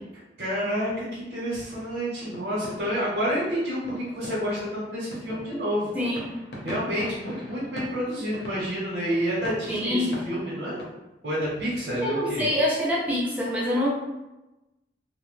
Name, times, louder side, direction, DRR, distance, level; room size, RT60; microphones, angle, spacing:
voice 1, 0.4-5.9 6.6-10.8 11.2-12.4, equal, 60° right, -8 dB, 0.8 m, -29 dB
sound 1, 1.3-10.9, equal, 65° left, 0.7 m, -42 dB
voice 2, 5.9-6.3 9.7-10.1 12.0-13.9, left 1 dB, 10° right, -6 dB, 0.4 m, -25 dB
2.7 x 2.1 x 3.0 m, 0.99 s
head